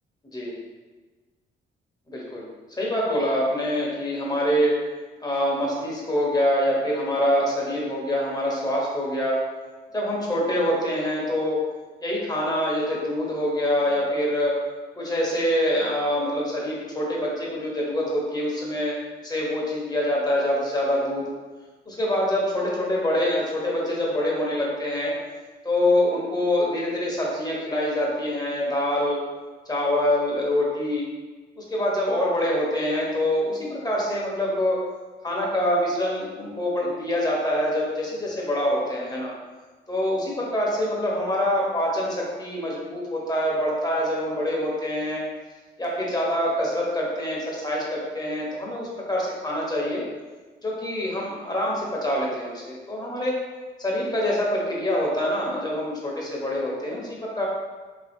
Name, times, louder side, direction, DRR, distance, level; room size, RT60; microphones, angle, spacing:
voice 1, 2.1-2.5 2.8-4.8 5.2-9.4 9.9-11.6 12.0-14.6 15.0-19.0 19.2-21.3 21.9-25.1 25.6-29.2 29.7-31.1 31.6-34.8 35.2-39.3 39.9-45.2 45.8-50.0 50.6-53.4 53.8-57.5, left 1 dB, 20° left, -4 dB, 1.1 m, -25 dB
3.2 x 3.0 x 3.6 m, 1.3 s
cardioid pair, 90°, 20 cm